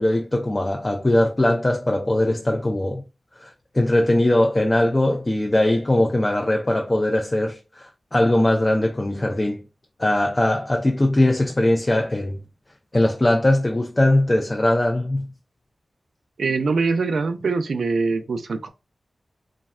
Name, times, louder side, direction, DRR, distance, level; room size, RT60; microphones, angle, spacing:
voice 1, 0.0-3.0 3.4-9.6 10.0-12.4 12.9-15.3, left 1 dB, 30° left, 0.3 m, -20 dB
voice 2, 16.4-18.7, right 4 dB, 85° right, 0.4 m, -23 dB
3.3 x 2.1 x 2.3 m
cardioid pair, 60°, 0 cm